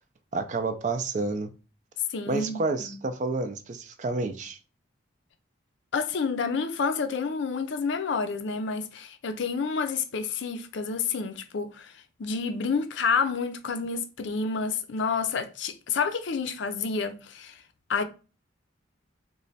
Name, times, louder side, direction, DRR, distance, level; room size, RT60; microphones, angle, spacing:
voice 1, 0.3-1.5 2.3-4.6, right 3 dB, 40° right, 0.3 m, -29 dB
voice 2, 2.1-3.0 5.9-11.9 12.2-17.6 17.9-18.0, left 5 dB, 65° left, 0.4 m, -29 dB
3.1 x 2.2 x 4.0 m
head